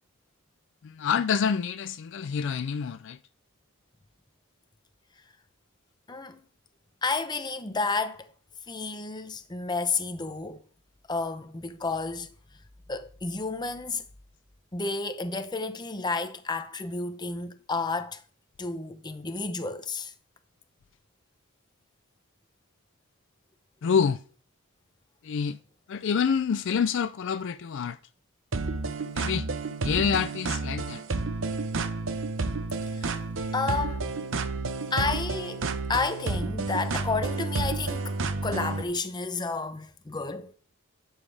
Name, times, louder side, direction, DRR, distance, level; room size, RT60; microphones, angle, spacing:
voice 1, 0.8-3.2 23.8-24.2 25.2-25.6 25.9-28.0 29.1-29.5 29.8-31.0, left 6 dB, 55° left, 0.4 m, -27 dB
voice 2, 6.1-6.4 7.0-8.3 8.7-10.6 11.1-12.3 12.9-14.0 14.7-18.2 18.6-20.1 32.9-33.2 33.5-34.1 34.9-40.5, left 3 dB, 20° left, 0.7 m, -31 dB
sound 1, 28.5-38.8, right 3 dB, 60° right, 0.8 m, -30 dB
11.0 x 7.3 x 3.4 m
head